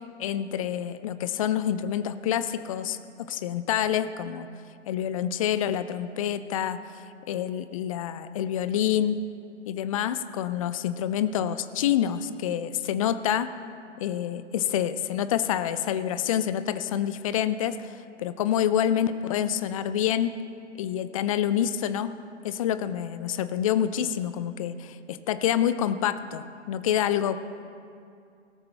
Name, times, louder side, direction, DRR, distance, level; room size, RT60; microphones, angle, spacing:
voice 1, 0.2-3.0 3.3-4.5 4.9-9.2 9.7-13.5 14.0-20.3 20.8-22.1 22.4-27.4, left 10 dB, 30° left, 13 dB, 0.5 m, -27 dB
17.5 x 13.5 x 3.4 m, 2.4 s
figure-of-eight pair, 115°, 36 cm